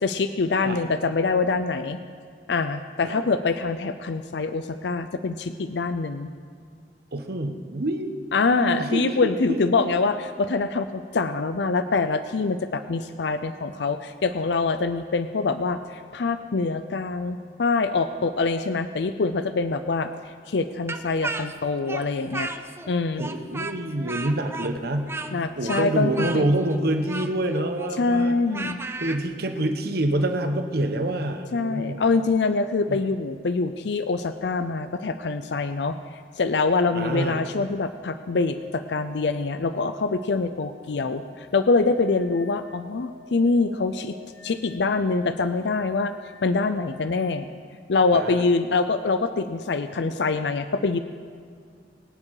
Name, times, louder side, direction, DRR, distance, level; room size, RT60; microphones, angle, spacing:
voice 1, 0.0-2.0 2.5-6.3 8.3-20.1 20.5-22.5 22.9-23.2 25.3-26.4 28.0-28.8 31.5-44.2 44.4-46.1 46.4-47.5 47.9-51.0, left 3 dB, 70° left, 10 dB, 0.5 m, -24 dB
voice 2, 7.1-8.1 8.5-9.9 23.2-25.1 25.6-28.3 29.0-32.0 32.9-33.0 36.9-37.4 48.1-48.4, right 1 dB, 60° right, 6 dB, 1.2 m, -27 dB
Speech, 20.9-22.9 23.2-29.2, right 3 dB, 15° right, 0.7 m, -34 dB
sound 1, 37.5-47.3 49.6-49.7, equal, 90° left, 1.4 m, -50 dB
22.5 x 9.7 x 4.9 m, 2.2 s
head